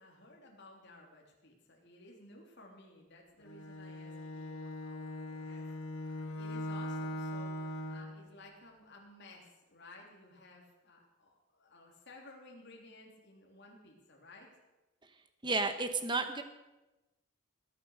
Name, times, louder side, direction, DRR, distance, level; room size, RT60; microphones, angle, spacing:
voice 1, 0.0-14.5, left 2 dB, 50° left, 0 dB, 3.3 m, -56 dB
Bowed string instrument, 3.5-8.2, left 1 dB, 75° left, 1.6 m, -40 dB
voice 2, 15.4-16.4, right 3 dB, 20° right, 8 dB, 1.1 m, -32 dB
20.0 x 8.8 x 6.4 m, 1.1 s
head